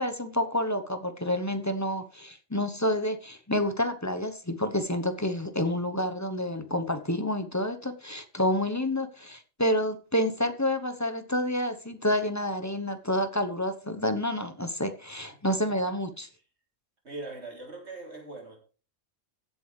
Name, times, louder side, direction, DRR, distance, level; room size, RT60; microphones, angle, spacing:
voice 1, 0.0-16.3, left 1 dB, 15° left, 0.9 m, -29 dB
voice 2, 15.5-15.9 17.0-18.6, right 2 dB, 55° right, 3.5 m, -41 dB
16.0 x 7.8 x 3.3 m
omnidirectional pair, 1.3 m